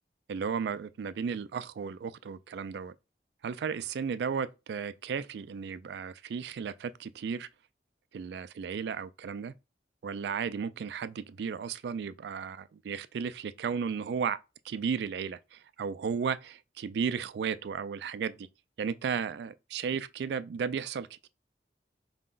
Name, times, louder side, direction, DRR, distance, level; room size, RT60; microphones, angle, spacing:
voice 1, 0.3-2.9 3.4-7.5 8.1-9.5 10.0-14.4 14.7-18.5 18.8-21.3, right 6 dB, 65° right, 0.3 m, -34 dB
4.6 x 2.1 x 3.8 m
head